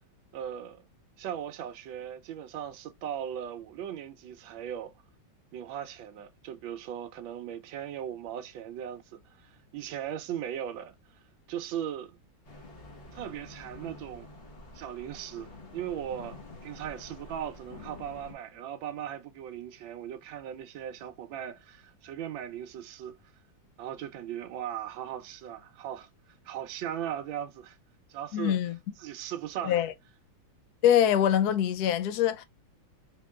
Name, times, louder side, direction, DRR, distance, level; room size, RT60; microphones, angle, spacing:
voice 1, 0.3-0.8 1.2-4.9 5.5-10.9 11.5-12.2 13.1-14.3 14.7-23.2 23.8-26.1 26.4-27.8 28.1-28.6 29.0-29.8, right 10 dB, 75° right, 1.4 m, -38 dB
sound 1, 12.4-18.3, left 2 dB, 35° left, 1.2 m, -48 dB
voice 2, 28.3-28.7 29.6-29.9 30.8-32.4, left 10 dB, 70° left, 0.9 m, -24 dB
3.7 x 3.5 x 2.3 m
omnidirectional pair, 2.2 m